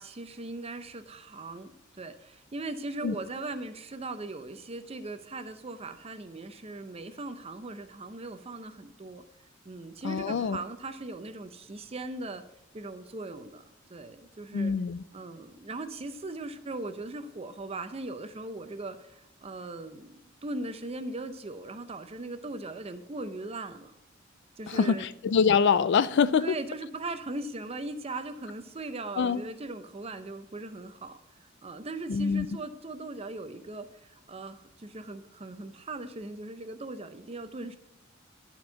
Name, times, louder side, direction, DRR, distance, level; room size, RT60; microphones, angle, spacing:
voice 1, 0.0-9.2 9.6-12.4 12.7-13.6 13.9-14.7 15.1-23.9 24.6-25.1 26.4-37.8, right 2 dB, 30° right, 10 dB, 0.6 m, -39 dB
voice 2, 10.0-10.6 14.5-15.0 24.7-26.6 29.2-29.4 32.1-32.5, left 6 dB, 60° left, 16 dB, 0.4 m, -25 dB
11.5 x 4.5 x 5.7 m, 0.81 s
head